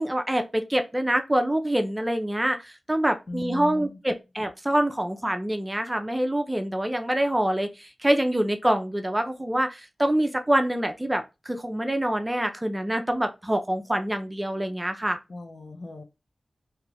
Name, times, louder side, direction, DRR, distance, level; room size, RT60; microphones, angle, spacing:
voice 1, 0.0-15.2, right 1 dB, 15° right, 0.4 m, -26 dB
voice 2, 3.3-4.0 15.3-16.0, left 2 dB, 55° left, 0.6 m, -36 dB
3.0 x 2.3 x 3.3 m
cardioid pair, 60°, 0 cm